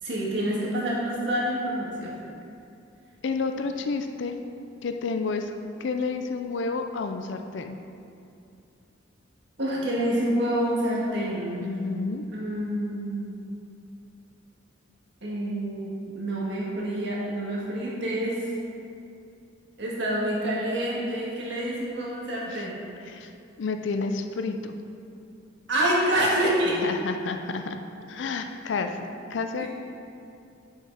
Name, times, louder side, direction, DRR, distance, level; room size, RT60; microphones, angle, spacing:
voice 1, 0.0-2.2 9.6-11.7 12.3-13.3 15.2-18.5 19.8-22.8 25.7-26.8 29.6-29.7, right 1 dB, 60° right, -5 dB, 1.8 m, -27 dB
voice 2, 3.2-4.4 4.8-5.5 5.8-7.8 11.6-12.3 22.5-22.7 23.1-23.3 23.6-24.7 26.7-27.8 28.1-29.0 29.3-29.7, left 4 dB, 65° left, 6 dB, 0.4 m, -30 dB
7.3 x 5.5 x 4.8 m, 2.6 s
head